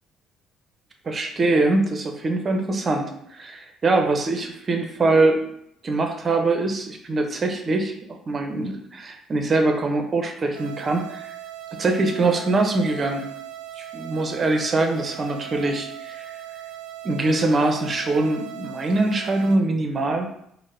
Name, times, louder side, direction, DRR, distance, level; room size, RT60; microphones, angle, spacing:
voice 1, 1.0-5.5 5.8-11.4 11.8-13.2 13.8-16.3 17.0-20.3, right 2 dB, 40° right, 4 dB, 0.6 m, -23 dB
sound 1, 10.6-19.6, right 11 dB, 85° right, 0.3 m, -39 dB
4.5 x 2.1 x 2.5 m, 0.72 s
supercardioid pair, 65°, 0 cm